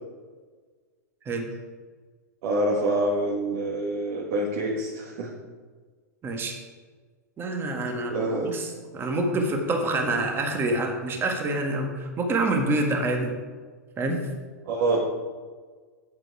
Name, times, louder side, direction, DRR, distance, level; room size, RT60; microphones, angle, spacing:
voice 1, 2.4-5.3 8.1-8.5 14.6-15.0, right 2 dB, 55° right, -3 dB, 1.7 m, -26 dB
voice 2, 6.2-6.6 7.4-13.3 14.0-14.3, right 2 dB, 25° right, 3 dB, 1.6 m, -27 dB
8.1 x 7.6 x 4.8 m, 1.5 s
hypercardioid pair, 105°, 9 cm